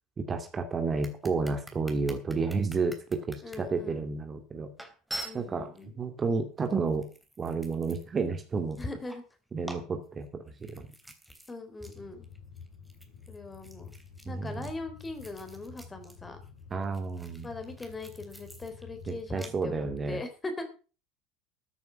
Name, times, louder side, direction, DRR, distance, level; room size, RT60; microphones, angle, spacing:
voice 1, 0.2-4.7 5.3-5.7 6.0-7.1 7.4-8.8 9.5-10.9 14.2-14.5 16.7-17.5 19.1-20.2, right 4 dB, 25° right, 6 dB, 2.4 m, -31 dB
sound 1, 1.0-3.6 4.2-4.3 4.8-5.9 6.6-8.3 8.6-9.3 9.6-11.5 11.8-12.0 12.2-16.2 16.4-19.5, right 1 dB, 5° right, 3.3 m, -46 dB
voice 2, 3.4-4.1 5.2-6.0 8.8-9.2 11.5-12.3 13.3-13.9 14.2-16.4 17.4-20.7, left 2 dB, 15° left, 7 dB, 3.8 m, -40 dB
sound 2, 11.8-20.0, left 6 dB, 60° left, 7.1 m, -50 dB
14.5 x 9.6 x 5.8 m, 0.36 s
figure-of-eight pair, 70°, 0 cm